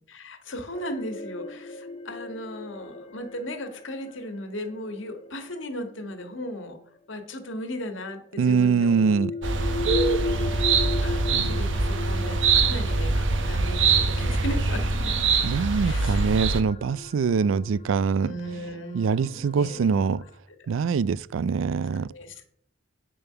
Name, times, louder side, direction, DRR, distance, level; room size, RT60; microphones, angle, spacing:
voice 1, 0.1-6.8 7.1-9.2 9.6-9.8 10.3-15.2 15.5-16.3 18.2-20.3 22.1-22.4, equal, 75° left, 1.7 m, -37 dB
sound 1, 0.7-6.8 7.9-20.3, left 3 dB, 30° left, 0.8 m, -37 dB
voice 2, 8.4-9.3 11.3-11.5 15.4-18.3 18.9-20.2 20.7-22.1, right 5 dB, 85° right, 0.4 m, -23 dB
sound 2, 9.4-16.6, right 4 dB, 70° right, 1.0 m, -23 dB
8.8 x 7.0 x 5.7 m
head